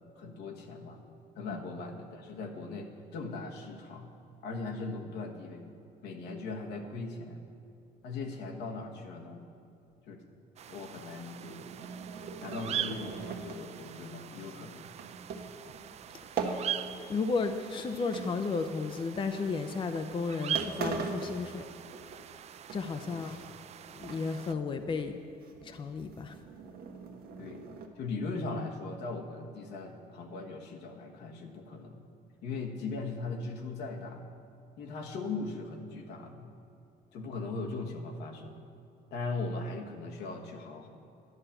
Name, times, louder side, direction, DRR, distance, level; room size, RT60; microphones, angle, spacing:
voice 1, 0.2-1.0 1.3-4.1 4.4-5.7 6.0-7.4 8.0-9.5 10.1-10.2 10.7-11.6 12.4-14.9 23.1-23.3 27.4-27.7 28.0-32.1 32.4-34.2 34.8-36.5 37.1-38.6 39.1-40.9, left 3 dB, 80° left, 1 dB, 1.4 m, -39 dB
sound 1, 10.6-24.5, right 10 dB, 40° right, 0.4 m, -42 dB
sound 2, 11.2-17.3 17.5-19.0 19.7-19.9 20.3-20.4 20.6-22.2 22.5-23.8 24.0-24.6 24.9-25.0 25.4-27.9, right 4 dB, 60° right, 1.2 m, -41 dB
voice 2, 17.1-21.7 22.7-23.4 23.9-25.2 25.6-26.4, left 4 dB, 30° left, 7 dB, 0.6 m, -33 dB
11.5 x 5.7 x 8.9 m, 2.6 s
cardioid pair, 110°, 17 cm